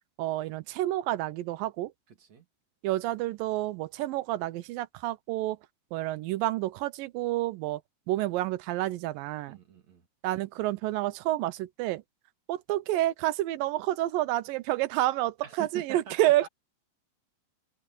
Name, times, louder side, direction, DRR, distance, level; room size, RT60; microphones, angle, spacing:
voice 1, 0.2-1.9 2.8-5.6 5.9-7.8 8.1-9.6 10.2-12.0 12.5-16.5, right 15 dB, 75° right, 2.3 m, -29 dB
voice 2, 2.1-2.5 9.5-10.1 15.4-16.5, right 9 dB, 50° right, 3.4 m, -45 dB
open air
omnidirectional pair, 4.4 m